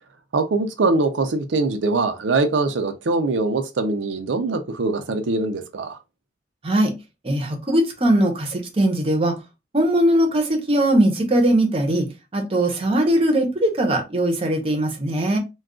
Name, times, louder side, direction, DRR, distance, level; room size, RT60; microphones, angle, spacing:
voice 1, 0.3-6.0, right 3 dB, 90° right, 0.5 m, -22 dB
voice 2, 7.2-9.3 9.7-12.1 12.3-15.4, right 1 dB, 30° right, 0.7 m, -20 dB
2.4 x 2.3 x 3.6 m
head